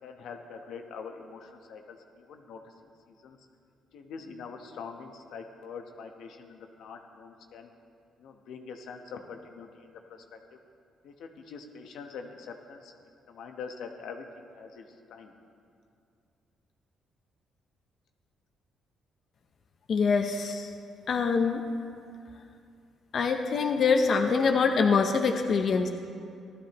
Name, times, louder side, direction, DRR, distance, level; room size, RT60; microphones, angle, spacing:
voice 1, 0.0-2.7 3.1-3.4 3.9-7.7 8.2-10.6 11.0-12.9 13.3-14.2 14.5-15.3, left 5 dB, 80° left, 4 dB, 1.0 m, -44 dB
voice 2, 19.9-20.7 21.1-21.6 23.1-25.9, left 5 dB, 55° left, 4 dB, 0.7 m, -24 dB
16.0 x 12.5 x 3.0 m, 2.4 s
cardioid pair, 90°, 0 cm